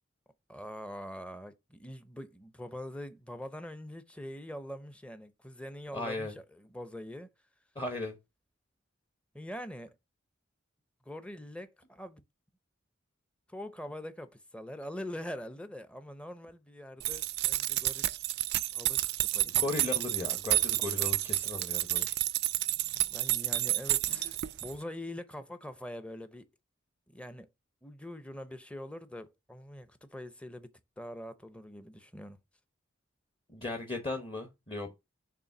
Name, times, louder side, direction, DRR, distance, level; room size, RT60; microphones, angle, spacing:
voice 1, 0.5-7.3 9.3-9.9 11.1-12.2 13.5-18.3 18.7-19.6 23.1-26.5 27.1-27.5 27.8-32.4, left 1 dB, 5° left, 0.6 m, -44 dB
voice 2, 5.9-6.3 7.7-8.2 19.6-22.1 33.5-34.9, left 2 dB, 25° left, 1.0 m, -36 dB
sound 1, 17.0-24.8, right 15 dB, 55° right, 0.4 m, -30 dB
6.8 x 3.3 x 5.8 m
head